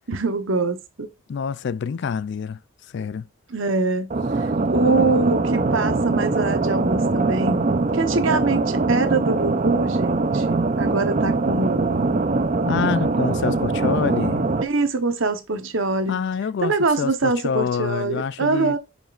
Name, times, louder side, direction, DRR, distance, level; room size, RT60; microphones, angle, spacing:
voice 1, 0.1-1.1 3.5-4.1 4.7-12.1 14.6-16.2 16.6-18.8, right 3 dB, 65° right, 1.0 m, -24 dB
voice 2, 1.3-2.6 2.9-3.3 12.7-14.5 16.1-18.8, left 6 dB, 55° left, 0.3 m, -26 dB
sound 1, 4.1-14.6, right 3 dB, 35° right, 0.6 m, -22 dB
9.1 x 5.1 x 2.5 m
head